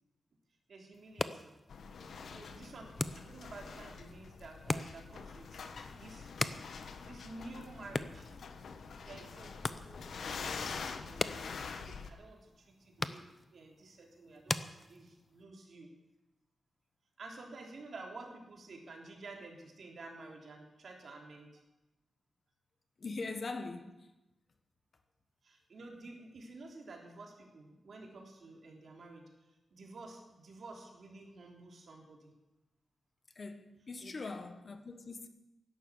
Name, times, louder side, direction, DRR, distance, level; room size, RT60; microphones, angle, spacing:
voice 1, 0.7-1.5 2.1-5.6 6.0-6.3 7.0-8.3 9.0-11.5 11.8-15.9 17.2-21.6 25.4-32.3 34.0-34.3, right 3 dB, 55° right, 3.4 m, -51 dB
sound 1, 0.9-15.4, left 2 dB, 25° left, 0.7 m, -42 dB
sound 2, 1.7-12.1, left 5 dB, 70° left, 1.3 m, -45 dB
voice 2, 23.0-24.0 33.3-35.3, left 3 dB, 40° left, 1.4 m, -42 dB
16.0 x 11.5 x 7.4 m
wide cardioid pair, 145°, 0 cm